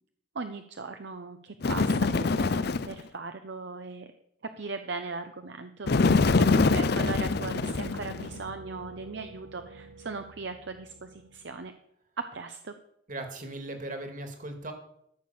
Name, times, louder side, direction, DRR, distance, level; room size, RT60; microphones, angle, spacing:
voice 1, 0.3-4.0 4.6-5.9 6.4-11.7 12.3-12.7, right 4 dB, 60° right, 8 dB, 0.7 m, -38 dB
Bird, 1.6-3.0 5.9-8.4, left 3 dB, 55° left, 0.5 m, -24 dB
sound 1, 5.8-11.7, right 2 dB, 90° right, 1.1 m, -44 dB
voice 2, 13.1-14.7, right 2 dB, 40° right, 5 dB, 2.1 m, -38 dB
13.5 x 6.7 x 7.0 m, 0.74 s
head